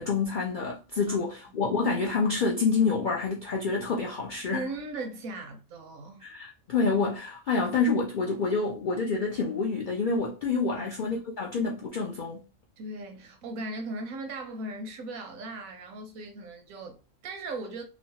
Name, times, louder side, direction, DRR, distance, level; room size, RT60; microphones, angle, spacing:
voice 1, 0.0-4.7 6.2-12.4, left 4 dB, 70° left, 0.4 m, -28 dB
voice 2, 4.5-6.2 10.7-11.1 12.8-17.8, right 2 dB, 90° right, 1.2 m, -38 dB
3.1 x 2.0 x 2.7 m
omnidirectional pair, 1.4 m